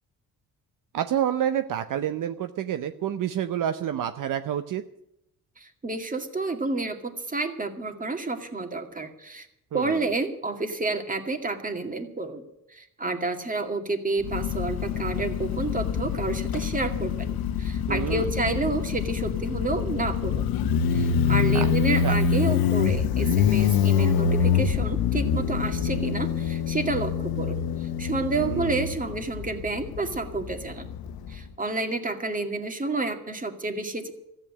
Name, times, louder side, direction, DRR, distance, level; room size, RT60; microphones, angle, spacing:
voice 1, 0.9-4.8 9.7-10.0 17.9-18.3 21.5-21.7 22.0-22.2 28.4-28.8, right 10 dB, 60° right, 9 dB, 0.8 m, -28 dB
voice 2, 5.6-9.5 9.7-12.4 12.7-20.5 20.9-27.6 28.0-30.9 31.3-34.1, right 3 dB, 20° right, 5 dB, 2.2 m, -30 dB
Motorcycle, 14.2-31.4, left 7 dB, 80° left, 0.9 m, -25 dB
14.0 x 8.8 x 9.9 m, 0.80 s
cardioid pair, 95°, 36 cm